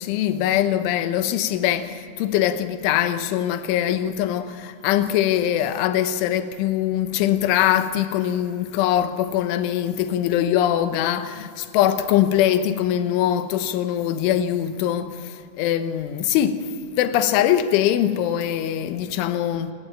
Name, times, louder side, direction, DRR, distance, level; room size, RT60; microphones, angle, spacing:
voice 1, 0.0-16.7 17.0-19.7, left 11 dB, 80° left, 3.4 m, -22 dB
26.5 x 20.5 x 8.8 m
omnidirectional pair, 5.9 m